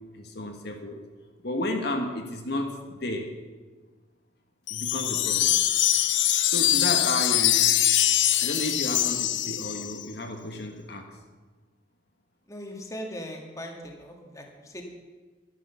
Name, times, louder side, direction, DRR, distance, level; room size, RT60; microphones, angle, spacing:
voice 1, 0.1-1.0 1.4-3.3 4.7-5.5 6.4-7.7 8.3-11.2, left 1 dB, 55° left, 3 dB, 1.5 m, -32 dB
Wind chime, 4.7-10.0, left 13 dB, 70° left, 0.7 m, -23 dB
voice 2, 12.5-14.8, equal, 15° left, 1 dB, 1.8 m, -39 dB
12.5 x 11.0 x 6.9 m, 1.3 s
head